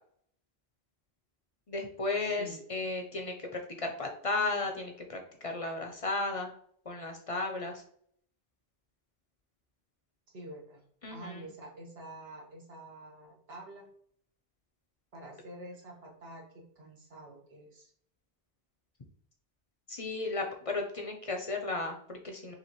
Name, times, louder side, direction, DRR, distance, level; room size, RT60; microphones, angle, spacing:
voice 1, 1.7-6.5 6.9-7.8 11.0-11.5 19.9-22.5, left 3 dB, 40° left, 3 dB, 0.6 m, -34 dB
voice 2, 2.2-2.6 10.3-10.8 11.1-13.9 15.1-17.9, right 1 dB, 70° right, -1 dB, 1.4 m, -47 dB
5.8 x 2.5 x 3.0 m, 0.64 s
omnidirectional pair, 1.1 m